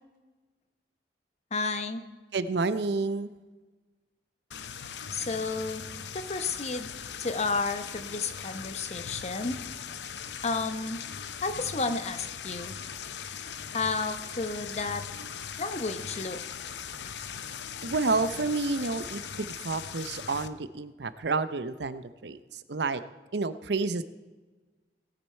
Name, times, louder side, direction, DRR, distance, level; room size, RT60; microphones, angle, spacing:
voice 1, 1.5-2.0 5.1-5.9 6.1-6.9 7.2-9.6 10.4-11.0 11.4-12.8 13.7-15.0 15.6-16.4, left 3 dB, 40° left, 9 dB, 0.9 m, -31 dB
voice 2, 2.3-3.3 17.8-23.0 23.3-24.0, right 3 dB, 70° right, 13 dB, 0.7 m, -30 dB
sound 1, 4.5-20.5, left 7 dB, 80° left, 0.7 m, -40 dB
17.5 x 9.7 x 4.4 m, 1.3 s
head